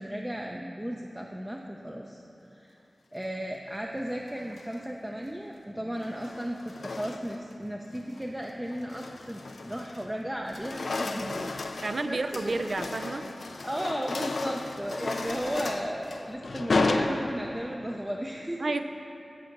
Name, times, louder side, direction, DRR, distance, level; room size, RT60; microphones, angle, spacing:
voice 1, 0.0-2.2 2.5-2.8 3.1-12.2 12.4-12.7 13.6-18.6, equal, 15° right, 0 dB, 0.6 m, -35 dB
sound 1, 4.4-4.9 6.0-7.5 8.0-8.2 8.7-10.1 10.4-17.7, left 3 dB, 75° left, 0.4 m, -33 dB
voice 2, 11.0-11.5 11.8-13.3 18.6-18.8, right 2 dB, 65° right, 8 dB, 0.5 m, -31 dB
8.0 x 7.0 x 5.9 m, 2.8 s
cardioid pair, 40°, 0 cm